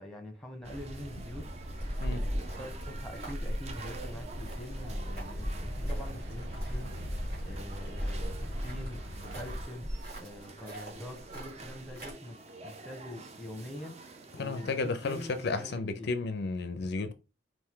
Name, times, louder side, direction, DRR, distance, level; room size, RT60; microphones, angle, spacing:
voice 1, 0.0-12.4 12.6-16.1, left 1 dB, 5° left, 0.9 m, -45 dB
sound 1, 0.6-15.8, right 3 dB, 35° right, 0.5 m, -49 dB
sound 2, 0.6-9.6, equal, 75° right, 1.0 m, -42 dB
sound 3, 1.6-12.1, equal, 50° right, 2.1 m, -38 dB
voice 2, 14.4-17.1, left 3 dB, 55° left, 0.4 m, -33 dB
4.5 x 2.5 x 3.6 m
head